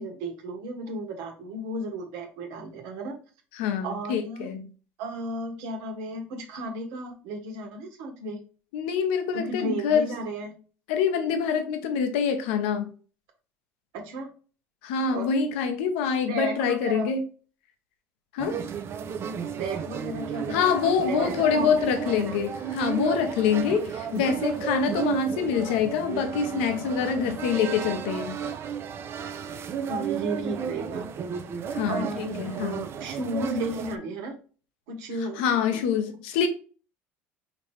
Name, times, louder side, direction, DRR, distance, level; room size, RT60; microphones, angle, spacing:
voice 1, 0.0-3.2 3.8-4.5 5.0-8.4 9.3-10.5 13.9-14.3 15.1-15.3 16.2-17.1 19.4-20.8 21.1-22.4 29.9-31.1 31.8-34.4 34.9-35.8, right 2 dB, 75° right, 1.3 m, -34 dB
voice 2, 3.5-4.7 8.7-10.1 10.9-12.9 14.8-17.2 18.3-18.6 20.5-28.4 31.7-32.8 35.4-36.5, left 6 dB, 85° left, 0.8 m, -25 dB
sound 1, 18.4-34.0, right 7 dB, 45° right, 0.6 m, -33 dB
5.1 x 2.9 x 3.3 m
supercardioid pair, 95°, 6 cm